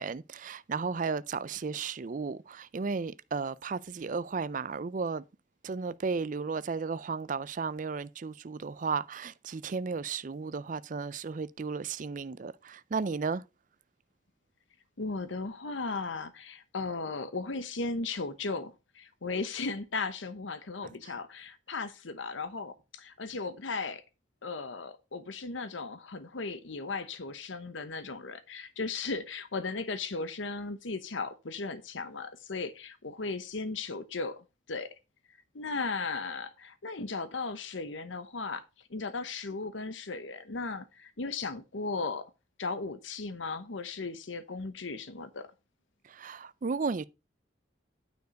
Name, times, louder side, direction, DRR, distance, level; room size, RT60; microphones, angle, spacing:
voice 1, 0.0-5.2 5.6-13.4 46.1-47.0, right 4 dB, 40° right, 0.4 m, -34 dB
voice 2, 15.0-24.0 24.4-34.9 35.5-38.6 38.9-42.3 42.6-45.5, left 3 dB, 80° left, 0.9 m, -36 dB
9.4 x 4.5 x 5.2 m
head